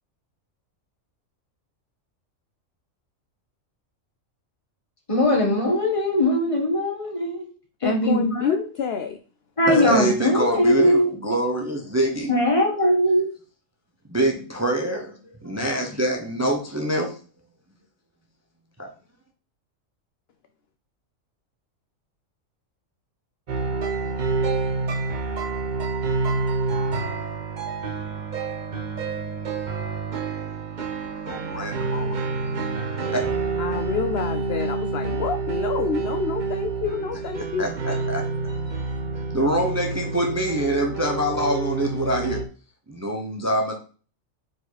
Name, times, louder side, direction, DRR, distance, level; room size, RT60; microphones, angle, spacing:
voice 1, 5.1-7.5 7.8-8.6 9.6-11.1 12.3-13.3, left 1 dB, 25° left, 1.5 m, -20 dB
voice 2, 7.8-9.2 33.6-38.1 38.5-39.0, left 7 dB, 60° left, 0.7 m, -29 dB
voice 3, 9.7-12.3 14.1-17.1 18.8-18.9 31.3-32.1 33.1-33.3 37.6-38.2 39.3-42.4 42.9-43.7, right 1 dB, 15° right, 0.8 m, -25 dB
sound 1, 23.5-42.4, right 4 dB, 45° right, 0.7 m, -28 dB
4.8 x 4.8 x 4.1 m
omnidirectional pair, 1.4 m